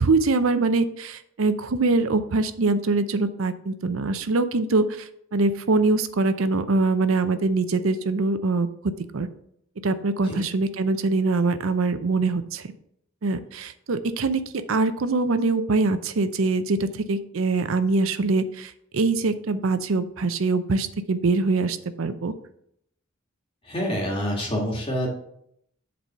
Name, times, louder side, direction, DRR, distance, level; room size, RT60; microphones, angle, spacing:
voice 1, 0.0-8.7 9.1-9.3 9.8-12.6 13.2-14.4 14.7-22.3, right 3 dB, 85° right, 11 dB, 0.6 m, -23 dB
voice 2, 23.7-25.1, equal, 25° left, -2 dB, 2.0 m, -27 dB
7.6 x 4.1 x 5.5 m, 0.72 s
head